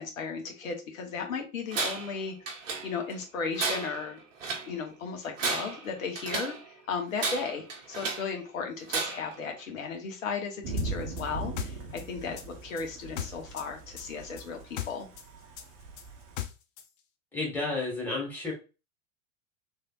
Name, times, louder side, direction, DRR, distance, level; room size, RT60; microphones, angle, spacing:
voice 1, 0.0-2.3 2.8-4.2 4.7-15.1, left 5 dB, 65° left, 3 dB, 1.1 m, -35 dB
Tools, 1.7-2.2 2.5-3.2 3.6-4.7 5.2-6.6 7.2-8.3 8.9-9.4, right 4 dB, 60° right, 0.9 m, -33 dB
Thunder / Rain, 10.6-16.4, right 3 dB, 35° right, 0.8 m, -40 dB
sound 1, 10.8-13.7 14.0-16.9, left 12 dB, 40° left, 0.5 m, -38 dB
voice 2, 17.3-18.5, left 3 dB, 5° left, -4 dB, 1.6 m, -31 dB
3.4 x 2.7 x 2.4 m, 0.31 s
figure-of-eight pair, 85°, 43 cm